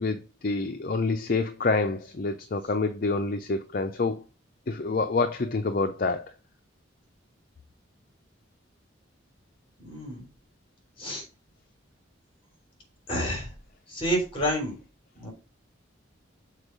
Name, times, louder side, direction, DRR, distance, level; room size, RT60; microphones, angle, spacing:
voice 1, 0.0-4.2 4.7-6.3, left 3 dB, 45° left, 0.5 m, -27 dB
voice 2, 9.8-10.3 11.0-11.2 13.1-13.5 13.9-14.8 15.1-15.3, equal, 25° left, 3.4 m, -29 dB
6.6 x 4.4 x 5.2 m
head